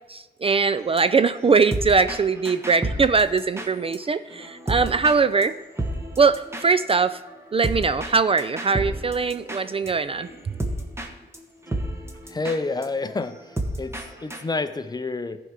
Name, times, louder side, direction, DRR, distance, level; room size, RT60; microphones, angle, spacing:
voice 1, 0.1-5.5 6.2-7.2 7.5-10.3, right 4 dB, 35° right, 13 dB, 0.3 m, -21 dB
sound 1, 0.8-4.0 4.3-5.2 5.4-5.5 5.8-11.1 11.3-11.4 11.7-14.4, right 1 dB, 15° right, 1.2 m, -32 dB
voice 2, 12.3-13.4 13.8-13.9 14.2-15.4, left 3 dB, 25° left, 11 dB, 0.6 m, -28 dB
14.5 x 4.8 x 5.8 m, 1.1 s
wide cardioid pair, 120°, 18 cm